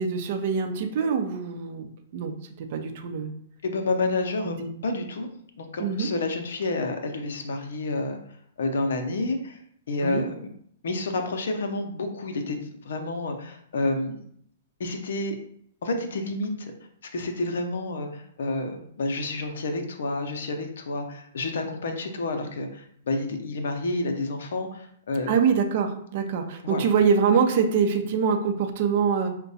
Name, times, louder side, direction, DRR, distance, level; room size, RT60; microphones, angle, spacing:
voice 1, 0.0-3.3 4.4-4.7 5.8-6.1 10.0-10.3 25.3-29.3, right 6 dB, 50° right, 5 dB, 0.6 m, -24 dB
voice 2, 3.6-4.5 4.8-5.3 5.6-8.2 8.6-9.6 9.9-10.3 10.8-12.6 12.8-14.2 14.8-15.4 15.8-16.7 17.1-25.3 26.6-26.8, left 2 dB, 70° left, 5 dB, 0.6 m, -29 dB
4.5 x 2.2 x 2.7 m, 0.66 s
hypercardioid pair, 120°, 0 cm